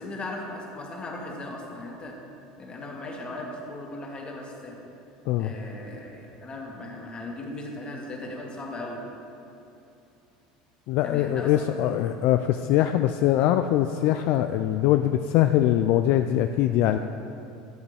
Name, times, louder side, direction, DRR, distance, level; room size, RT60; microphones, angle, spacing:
voice 1, 0.0-2.2 2.6-4.8 5.4-9.0 11.0-11.9, left 2 dB, 30° left, -1 dB, 1.9 m, -37 dB
voice 2, 10.9-17.0, left 12 dB, 60° left, 8 dB, 0.3 m, -22 dB
13.5 x 7.3 x 3.4 m, 2.7 s
hypercardioid pair, 85°, 4 cm